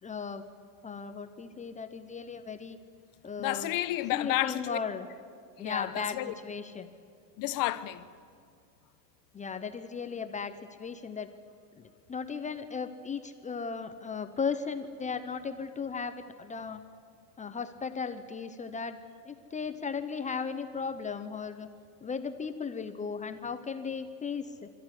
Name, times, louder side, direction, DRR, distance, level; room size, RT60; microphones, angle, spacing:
voice 1, 0.0-0.4 0.8-2.8 3.2-3.7 4.1-5.1 5.6-6.9 9.3-11.3 11.8-16.8 17.4-19.0 19.2-21.7 22.0-24.7, left 5 dB, 15° left, 0.7 m, -36 dB
voice 2, 3.4-4.8 5.6-6.3 7.4-8.1, left 16 dB, 45° left, 1.0 m, -31 dB
26.0 x 14.0 x 9.8 m
cardioid pair, 150°, 46 cm